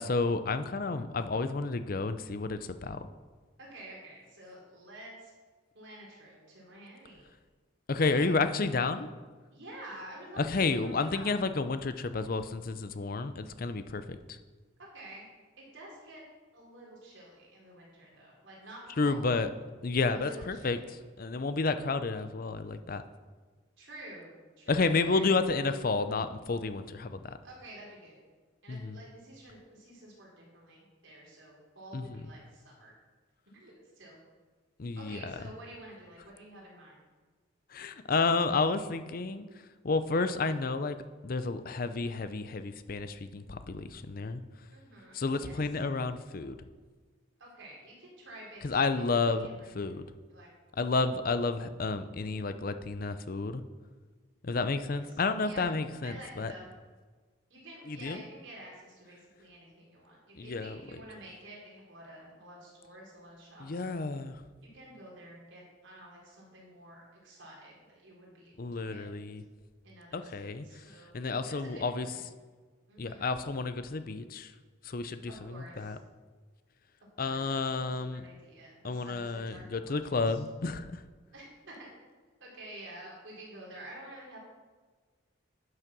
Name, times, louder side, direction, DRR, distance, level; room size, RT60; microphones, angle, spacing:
voice 1, 0.0-3.1 7.9-9.1 10.4-14.4 19.0-19.5 19.8-23.0 24.7-27.4 28.7-29.0 31.9-32.2 34.8-35.4 37.7-39.5 39.8-41.0 41.2-44.4 45.1-46.5 48.6-49.5 49.7-50.1 50.8-53.6 54.4-56.5 57.9-58.2 60.4-60.8 63.6-64.4 68.6-69.4 70.1-72.1 73.0-74.5 74.8-76.0 77.2-78.2 78.8-81.0, left 3 dB, 45° left, 11 dB, 0.5 m, -31 dB
voice 2, 3.6-5.3 5.7-7.3 8.1-8.3 9.5-11.3 14.9-15.3 15.6-16.2 16.5-19.3 20.1-20.9 23.8-24.3 24.6-25.2 27.4-28.2 28.6-32.9 33.5-34.2 35.0-37.0 44.7-45.6 47.4-49.9 50.3-50.5 54.9-55.0 55.4-55.7 56.0-56.7 57.5-64.0 64.7-69.1 69.8-71.2 71.4-72.2 72.9-73.3 75.3-76.0 77.2-80.4 81.3-81.9 82.4-84.4, right 1 dB, 70° right, -4 dB, 3.8 m, -50 dB
10.5 x 6.4 x 6.0 m, 1.4 s
head